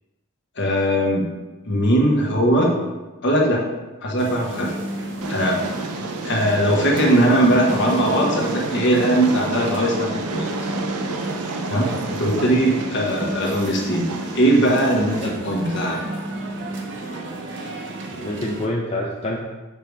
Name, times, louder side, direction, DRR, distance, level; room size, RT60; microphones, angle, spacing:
voice 1, 0.6-1.2 1.6-2.7 3.2-3.6 4.0-4.7 5.3-5.6 6.2-10.4 11.7-14.1 14.3-16.0, right 1 dB, 55° left, -2 dB, 1.4 m, -20 dB
sound 1, 4.2-18.7, right 2 dB, 55° right, 0.8 m, -33 dB
Train, 5.2-15.2, right 3 dB, 85° right, 0.7 m, -30 dB
voice 2, 12.3-12.6 15.2-15.5 18.1-19.4, left 1 dB, 30° left, -3 dB, 0.6 m, -27 dB
7.4 x 3.4 x 4.7 m, 1.2 s
head